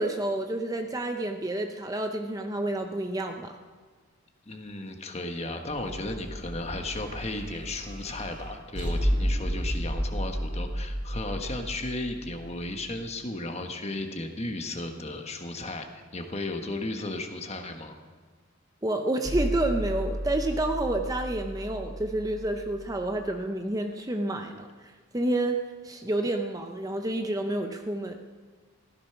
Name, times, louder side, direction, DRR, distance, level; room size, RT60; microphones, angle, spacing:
voice 1, 0.0-3.5 18.8-24.7 25.1-28.1, right 1 dB, 15° right, 5 dB, 0.7 m, -29 dB
voice 2, 4.4-18.0, left 2 dB, 30° left, 5 dB, 1.3 m, -35 dB
sound 1, 5.7-13.0 19.2-23.3, equal, 35° right, 2.7 m, -33 dB
15.5 x 14.0 x 5.9 m, 1.5 s
head